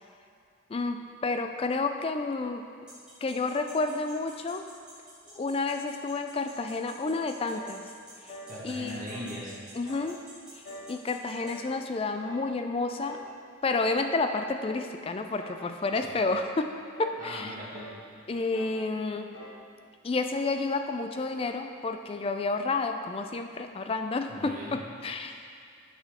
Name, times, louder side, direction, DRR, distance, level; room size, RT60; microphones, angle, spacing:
voice 1, 0.7-2.7 3.2-4.6 5.3-7.8 8.6-9.0 9.7-10.2 10.9-13.2 13.6-16.7 17.0-17.5 18.3-19.3 20.0-25.3, left 3 dB, 25° left, 6 dB, 0.3 m, -30 dB
sound 1, 2.9-11.5, right 2 dB, 5° right, 1.6 m, -50 dB
sound 2, 7.5-7.8 8.3-8.6 9.1-9.4 9.9-10.1 10.6-11.0 11.4-11.7 12.2-12.5 13.0-13.3 13.8-14.1 14.6-14.9 15.4-15.7 16.2-16.5 17.0-17.2 17.7-18.0 18.5-18.8 19.3-19.6, equal, 60° left, 1.2 m, -45 dB
voice 2, 8.5-9.6 16.0-16.1 17.2-17.9 24.3-24.8 25.2-25.3, equal, 40° right, -6 dB, 1.4 m, -39 dB
7.9 x 5.9 x 3.6 m, 2.4 s
head